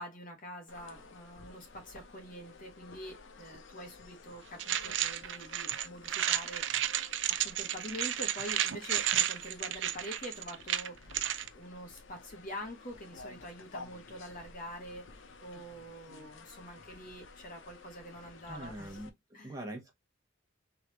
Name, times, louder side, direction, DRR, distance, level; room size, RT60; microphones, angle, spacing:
voice 1, 0.0-6.6 7.3-11.2 11.5-19.0 19.3-19.5, equal, 45° left, 1.3 m, -45 dB
sound 1, 0.7-19.1, left 3 dB, 75° left, 0.8 m, -53 dB
sound 2, 4.6-11.5, right 11 dB, 65° right, 0.4 m, -32 dB
voice 2, 18.5-19.9, right 1 dB, 20° right, 1.4 m, -43 dB
3.9 x 3.2 x 2.9 m
head